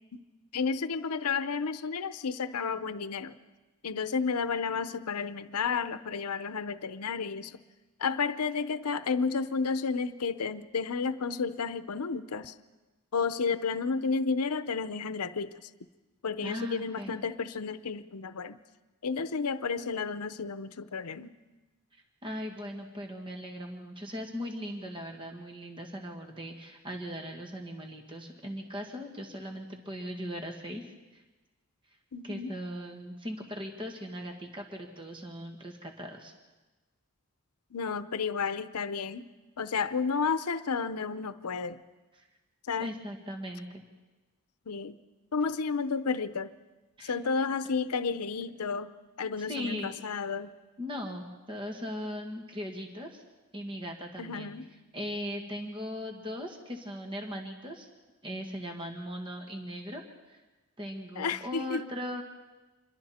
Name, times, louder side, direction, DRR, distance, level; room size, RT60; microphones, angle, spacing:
voice 1, 0.5-3.3 3.8-7.6 8.0-12.5 13.1-15.7 16.2-18.6 19.0-21.3 32.1-32.5 37.7-39.3 39.6-41.8 42.7-42.9 44.7-45.0 45.3-46.5 47.0-48.9 49.2-50.5 54.2-54.7 61.2-61.8, left 5 dB, 85° left, 12 dB, 0.7 m, -32 dB
voice 2, 16.4-17.1 22.2-30.9 31.1-31.2 32.2-36.3 42.2-42.3 42.8-43.8 47.0-47.1 49.4-49.9 50.8-53.2 53.5-54.5 54.9-57.9 58.2-60.0 60.3-60.4 60.8-62.2, equal, 25° right, 2 dB, 1.8 m, -39 dB
27.0 x 22.5 x 4.3 m, 1.2 s
head